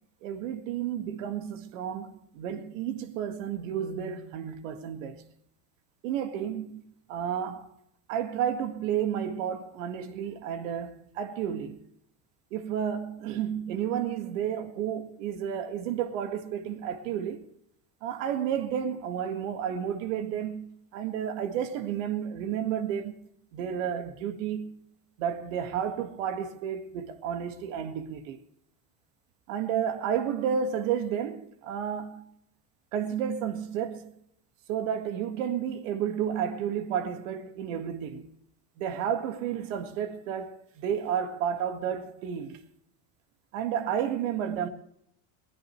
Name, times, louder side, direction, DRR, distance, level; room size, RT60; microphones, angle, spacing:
voice 1, 0.2-5.2 6.0-6.8 7.1-7.7 8.1-11.8 12.5-17.5 18.0-23.1 23.5-24.8 25.2-28.4 29.5-32.3 32.9-34.1 34.7-38.4 38.8-42.6 43.5-44.7, right 8 dB, 85° right, 1.9 m, -31 dB
21.5 x 16.5 x 3.2 m
supercardioid pair, 125°, 38 cm